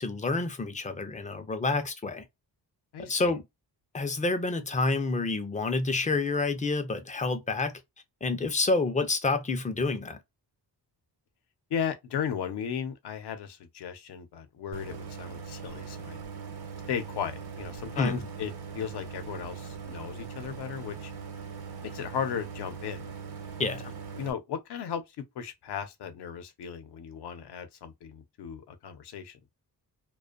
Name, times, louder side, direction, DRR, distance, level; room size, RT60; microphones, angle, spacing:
voice 1, 0.0-2.2 3.1-3.4 3.9-7.7 8.2-10.2 18.0-18.2 23.6-23.9, left 3 dB, 20° left, 0.4 m, -28 dB
voice 2, 2.9-3.4 11.7-16.2 16.9-21.1 21.8-23.1 24.1-29.4, left 7 dB, 75° left, 0.7 m, -36 dB
Idling, 14.7-24.3, right 6 dB, 65° right, 0.9 m, -41 dB
2.5 x 2.2 x 2.3 m
wide cardioid pair, 150°, 40 cm